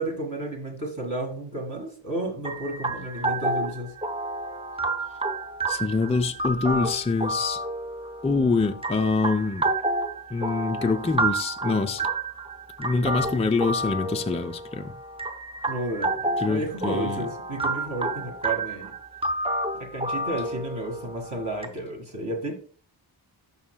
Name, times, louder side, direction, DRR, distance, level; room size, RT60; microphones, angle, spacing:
voice 1, 0.0-3.9 15.7-18.9 19.7-22.6, right 1 dB, 40° right, 1.9 m, -32 dB
sound 1, 2.4-21.7, right 2 dB, 10° right, 0.7 m, -30 dB
voice 2, 5.7-7.6 8.2-9.7 10.3-12.1 12.8-14.9 16.4-17.3, left 4 dB, 15° left, 0.4 m, -25 dB
11.5 x 5.7 x 2.2 m
wide cardioid pair, 85°, 47 cm